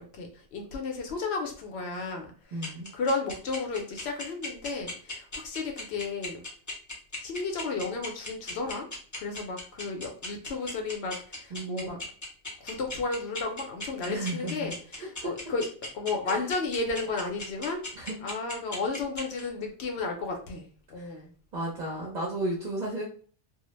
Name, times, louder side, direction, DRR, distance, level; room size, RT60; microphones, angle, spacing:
voice 1, 0.0-6.4 7.2-8.9 9.1-12.0 12.6-15.7 15.9-21.3, left 3 dB, 70° left, 3 dB, 0.8 m, -33 dB
voice 2, 2.5-2.9 11.5-12.0 14.1-14.5 15.2-15.3 16.3-16.4 18.0-18.2 21.0-21.1 21.5-23.0, right 2 dB, 45° right, -4 dB, 0.7 m, -33 dB
sound 1, 2.6-19.4, left 2 dB, 20° left, 0.5 m, -37 dB
2.2 x 2.0 x 3.0 m, 0.43 s
omnidirectional pair, 1.2 m